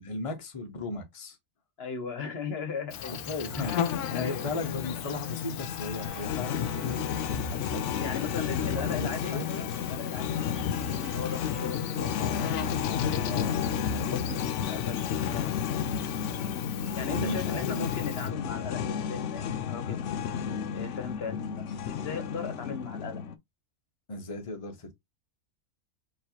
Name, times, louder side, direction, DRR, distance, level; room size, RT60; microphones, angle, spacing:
voice 1, 0.0-1.4 3.0-8.4 8.8-9.5 13.2-14.4 17.1-17.9 24.1-24.9, left 3 dB, 25° left, 0.9 m, -37 dB
voice 2, 1.8-3.2 3.6-4.5 7.9-15.9 16.9-20.0 20.7-23.2, left 5 dB, 45° left, 1.2 m, -39 dB
Insect, 2.9-18.3, left 9 dB, 80° left, 1.2 m, -38 dB
sound 1, 3.6-23.4, left 7 dB, 65° left, 0.8 m, -32 dB
sound 2, 6.0-11.8, right 5 dB, 90° right, 1.5 m, -51 dB
4.6 x 3.2 x 2.8 m
omnidirectional pair, 1.6 m